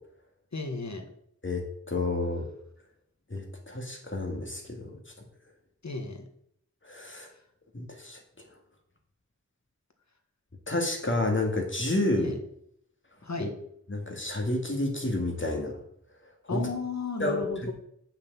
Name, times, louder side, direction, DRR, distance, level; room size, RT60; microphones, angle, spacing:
voice 1, 0.5-1.1 5.8-6.2 7.2-7.3 12.2-12.4 13.2-13.5 16.5-17.7, left 3 dB, 70° left, 5 dB, 1.6 m, -34 dB
voice 2, 1.4-2.4 3.3-5.0 6.8-7.3 7.7-8.5 10.7-12.3 13.4-13.5 13.9-15.8 16.5-16.6 17.2-17.5, left 2 dB, 40° left, 2 dB, 2.1 m, -30 dB
6.6 x 6.1 x 7.5 m, 0.70 s
wide cardioid pair, 60°, 29 cm